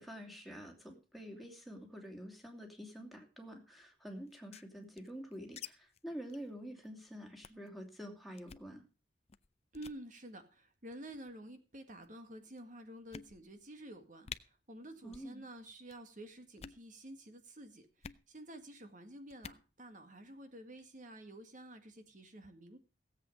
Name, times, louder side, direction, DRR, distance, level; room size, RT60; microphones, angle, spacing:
voice 1, 0.0-8.8 15.0-15.4, equal, ahead, 2 dB, 2.7 m, -48 dB
sound 1, 4.3-5.7 5.9-6.0 6.3-6.5 6.8-7.0 7.4-7.7 8.4-8.7 9.3-9.5 9.7-10.0 10.9-11.3 12.0-12.1 12.6-12.7 13.1-13.7 13.9-14.0 14.2-14.4 15.1-15.3 15.6-16.0 16.5-16.8 18.0-18.2 19.3-19.6, left 7 dB, 35° left, 0.5 m, -49 dB
voice 2, 9.7-14.3 14.7-22.8, right 1 dB, 45° right, 8 dB, 1.8 m, -50 dB
17.0 x 8.0 x 5.3 m, 0.32 s
head